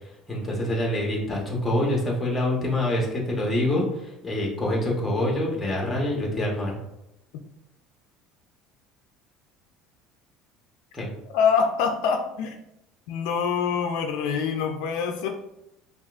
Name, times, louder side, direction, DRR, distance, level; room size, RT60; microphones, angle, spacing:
voice 1, 0.3-6.8 10.9-11.1, left 1 dB, 15° left, -1 dB, 1.1 m, -26 dB
voice 2, 11.3-12.6 13.1-15.3, left 6 dB, 75° left, 4 dB, 0.4 m, -25 dB
5.4 x 2.4 x 2.4 m, 0.85 s
cardioid pair, 120°, 0 cm